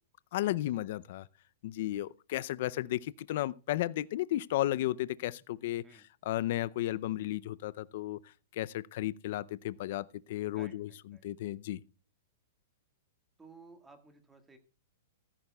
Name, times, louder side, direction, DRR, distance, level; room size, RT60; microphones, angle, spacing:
voice 1, 0.3-1.2 1.6-5.8 6.2-8.2 8.5-10.9 11.2-11.8, left 14 dB, 60° left, 0.5 m, -34 dB
voice 2, 10.5-11.3 13.4-14.6, right 3 dB, 10° right, 1.7 m, -56 dB
15.5 x 14.0 x 2.3 m
hypercardioid pair, 140°, 0 cm